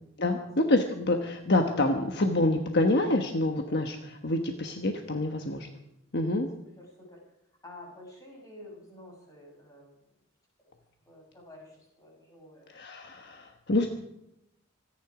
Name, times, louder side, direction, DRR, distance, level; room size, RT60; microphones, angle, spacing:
voice 1, 0.2-5.7 6.1-6.5 12.7-13.9, left 2 dB, 50° left, 4 dB, 1.3 m, -27 dB
voice 2, 6.8-7.2 7.6-9.9 11.0-12.7, left 1 dB, 15° left, -2 dB, 7.5 m, -49 dB
25.5 x 10.5 x 5.0 m, 0.84 s
head